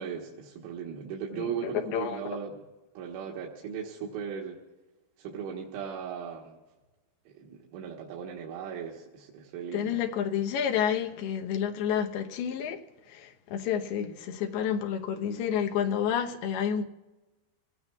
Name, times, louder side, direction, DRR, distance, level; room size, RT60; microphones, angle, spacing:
voice 1, 0.0-2.6 3.0-4.6 5.2-6.6 7.3-10.0, right 7 dB, 90° right, 3.8 m, -37 dB
voice 2, 1.3-2.4 9.7-12.8 13.1-16.8, left 8 dB, 75° left, 2.4 m, -30 dB
29.0 x 18.5 x 2.3 m
omnidirectional pair, 5.5 m